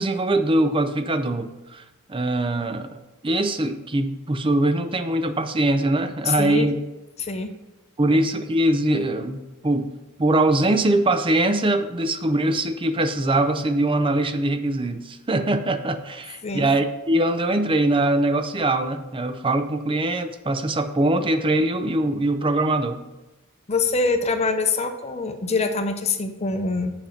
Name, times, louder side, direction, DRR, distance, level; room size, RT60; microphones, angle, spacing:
voice 1, 0.0-1.8 2.1-2.9 3.2-6.8 8.0-9.9 10.2-23.0, right 1 dB, 25° right, 8 dB, 0.5 m, -22 dB
voice 2, 6.2-6.7 7.2-7.5 16.4-16.7 23.7-26.9, left 4 dB, 30° left, 7 dB, 0.7 m, -24 dB
7.4 x 5.2 x 5.8 m, 1.0 s
head